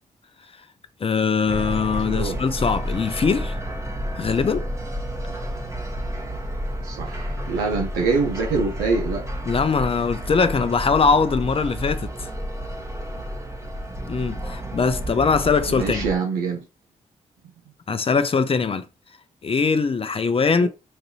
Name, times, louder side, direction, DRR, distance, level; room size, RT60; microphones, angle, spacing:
voice 1, 1.0-3.6 4.1-4.7 9.5-12.3 14.1-16.1 17.9-18.9 19.4-20.7, left 5 dB, 40° left, 0.5 m, -21 dB
sound 1, 1.5-16.2, equal, 20° right, 1.0 m, -30 dB
voice 2, 2.1-2.4 6.8-9.3 15.7-16.7 20.6-20.7, right 4 dB, 90° right, 0.6 m, -25 dB
4.0 x 2.7 x 2.7 m
supercardioid pair, 45°, 15 cm